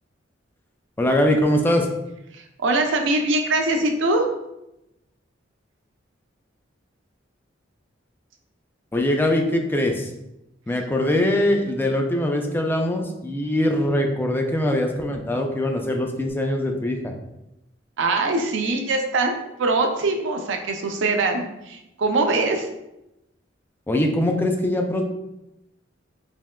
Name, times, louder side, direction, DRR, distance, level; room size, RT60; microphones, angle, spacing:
voice 1, 1.0-1.9 8.9-10.1 10.7-17.1 23.9-25.0, left 1 dB, 10° left, 3 dB, 0.3 m, -22 dB
voice 2, 2.3-4.3 18.0-22.7, right 2 dB, 70° right, 4 dB, 0.5 m, -23 dB
3.4 x 2.8 x 2.2 m, 0.89 s
head